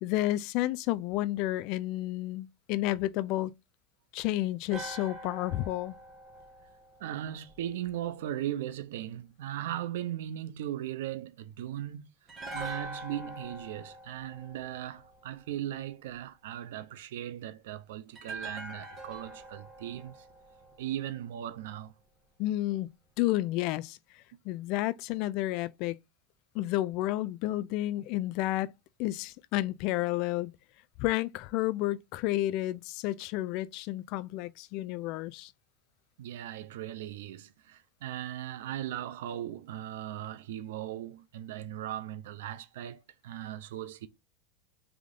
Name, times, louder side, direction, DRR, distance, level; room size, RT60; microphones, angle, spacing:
voice 1, 0.0-3.5 4.1-6.0 22.4-22.9 23.2-24.0 24.5-26.0 26.5-28.7 29.0-30.5 31.0-35.5, left 16 dB, 55° left, 0.3 m, -31 dB
sound 1, 4.7-7.9 12.3-15.5 18.1-21.4 21.6-21.8, right 2 dB, 25° right, 1.6 m, -44 dB
voice 2, 7.0-12.1 12.5-20.3 20.8-21.9 36.2-44.1, right 12 dB, 85° right, 0.5 m, -38 dB
3.6 x 3.5 x 3.7 m
supercardioid pair, 130°, 0 cm